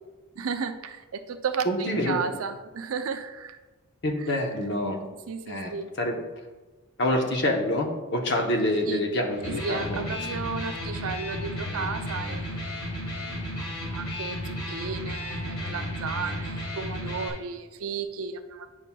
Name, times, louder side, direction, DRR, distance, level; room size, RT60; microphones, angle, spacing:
voice 1, 0.4-3.6 4.2-4.4 5.3-5.9 8.8-9.1 9.4-18.7, right 5 dB, 75° right, 8 dB, 0.5 m, -34 dB
voice 2, 1.7-2.2 4.0-5.0 5.5-5.7 6.0-6.2 7.0-10.0, left 1 dB, 50° left, 2 dB, 0.8 m, -26 dB
Electric guitar, 9.3-17.3, left 1 dB, 85° left, 1.7 m, -33 dB
9.0 x 5.6 x 2.3 m, 1.2 s
head